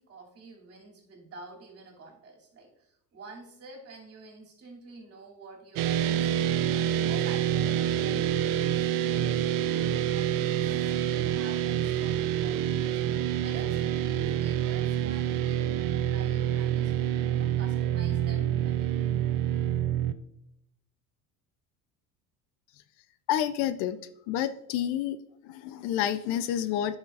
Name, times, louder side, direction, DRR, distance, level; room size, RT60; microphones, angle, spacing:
voice 1, 0.0-6.6 6.9-19.1, right 3 dB, 35° right, -2 dB, 2.9 m, -48 dB
sound 1, 5.8-20.1, right 10 dB, 55° right, 0.6 m, -27 dB
voice 2, 23.3-24.0 24.3-25.2 25.4-27.0, left 10 dB, 65° left, 12 dB, 0.6 m, -29 dB
10.5 x 6.1 x 2.5 m, 0.82 s
supercardioid pair, 95°, 41 cm